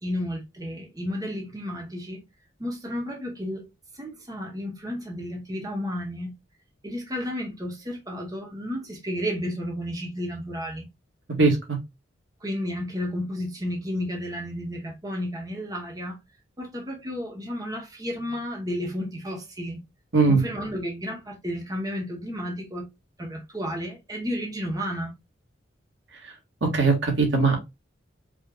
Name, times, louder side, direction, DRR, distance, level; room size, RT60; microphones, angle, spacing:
voice 1, 0.0-2.2 2.6-3.7 3.9-6.3 6.8-10.9 12.4-16.2 16.6-19.8 20.3-22.9 23.2-25.1, equal, 20° right, 1.1 m, -32 dB
voice 2, 26.7-27.6, right 4 dB, 80° right, 1.8 m, -19 dB
4.8 x 3.2 x 2.4 m
head